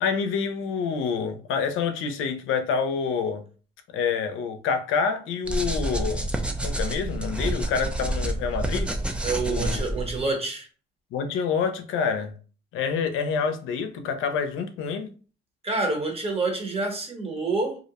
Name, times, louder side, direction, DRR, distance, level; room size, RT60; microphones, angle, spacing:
voice 1, 0.0-3.4 3.9-6.3 6.6-8.9 9.4-9.8 11.1-12.3 12.7-15.1, left 6 dB, 85° left, 0.4 m, -27 dB
sound 1, 5.4-10.3, right 1 dB, 5° right, 0.3 m, -28 dB
voice 2, 9.2-10.7 15.6-17.8, right 3 dB, 30° right, 0.9 m, -27 dB
2.5 x 2.0 x 2.8 m
cardioid pair, 90°, 20 cm